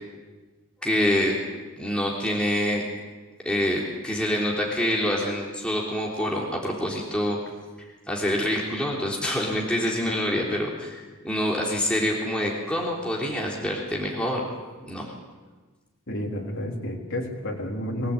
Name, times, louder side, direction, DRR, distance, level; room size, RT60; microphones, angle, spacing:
voice 1, 0.8-1.4 1.8-2.8 3.5-7.4 8.1-14.5 14.9-15.1, equal, 5° left, -3 dB, 3.5 m, -26 dB
voice 2, 16.1-18.1, left 1 dB, 60° left, -1 dB, 4.0 m, -30 dB
24.0 x 17.0 x 8.6 m, 1.3 s
head